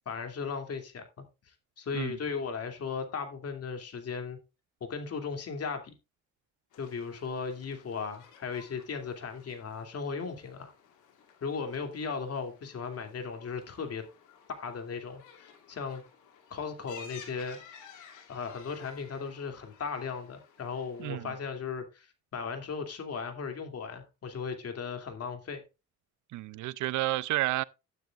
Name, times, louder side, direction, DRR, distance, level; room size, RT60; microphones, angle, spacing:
voice 1, 0.1-1.2 1.8-4.4 4.8-5.9 6.8-10.7 11.4-14.0 14.5-16.0 16.5-17.6 18.3-22.1 22.3-25.6, left 5 dB, 55° left, 2.6 m, -37 dB
sound 1, 6.7-21.1, left 7 dB, 85° left, 2.6 m, -55 dB
voice 2, 21.0-21.3 26.3-27.6, right 17 dB, 75° right, 0.5 m, -31 dB
12.0 x 10.0 x 2.4 m
cardioid pair, 90°, 30 cm